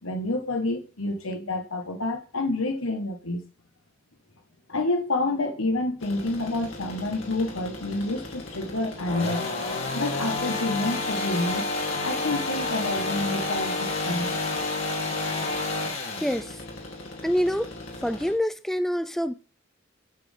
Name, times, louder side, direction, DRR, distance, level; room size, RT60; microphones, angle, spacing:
voice 1, 0.0-3.4 4.7-9.6 9.9-11.7 12.0-14.3, left 2 dB, 90° left, 1.6 m, -28 dB
sound 1, 6.0-18.3, left 2 dB, 70° left, 2.4 m, -31 dB
voice 2, 16.2-16.6 17.2-17.7 18.0-19.3, equal, ahead, 0.3 m, -26 dB
8.4 x 6.6 x 3.7 m
head